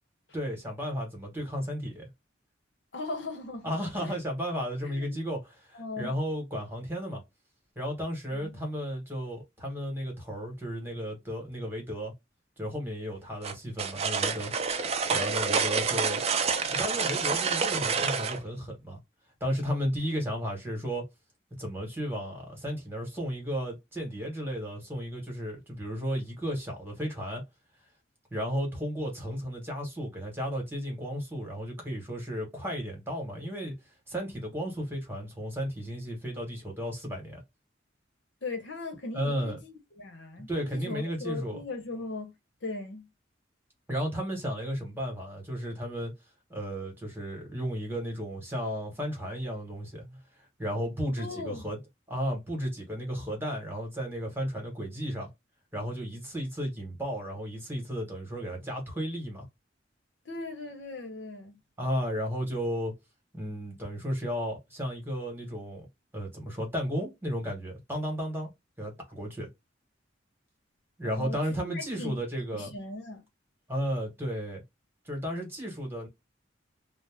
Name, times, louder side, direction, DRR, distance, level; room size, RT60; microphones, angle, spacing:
voice 1, 0.3-2.1 3.6-7.2 7.8-12.1 12.6-14.5 15.1-16.2 16.7-19.0 19.4-21.1 21.6-27.4 28.3-33.7 34.1-37.4 39.1-39.6 40.5-41.6 43.9-46.1 46.5-50.2 50.6-51.8 52.1-55.3 55.7-59.5 61.8-62.9 63.3-65.9 66.1-68.5 68.8-69.5 71.0-72.7 73.7-74.6 75.0-76.1, equal, 10° right, 1.1 m, -34 dB
voice 2, 2.9-3.7 4.0-4.2 4.8-5.2 5.7-6.2 8.3-8.6 38.4-42.3 42.6-43.1 51.2-51.7 60.2-61.6 71.0-71.4 71.6-72.2 72.5-73.2, left 3 dB, 70° left, 0.9 m, -39 dB
sound 1, 13.4-18.4, right 5 dB, 35° right, 0.4 m, -28 dB
2.5 x 2.1 x 3.3 m
head